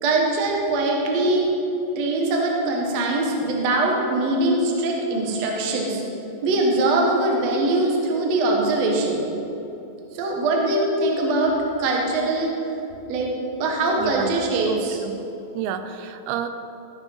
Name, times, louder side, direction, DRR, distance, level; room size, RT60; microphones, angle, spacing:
voice 1, 0.0-1.5 1.9-6.0 6.4-9.2 10.1-12.5 13.1-13.3 13.6-15.0, right 2 dB, 65° right, 0 dB, 1.6 m, -22 dB
voice 2, 14.0-14.4 14.7-15.2 15.6-16.5, right 9 dB, 85° right, 9 dB, 2.8 m, -30 dB
15.5 x 6.3 x 5.5 m, 3.0 s
omnidirectional pair, 5.3 m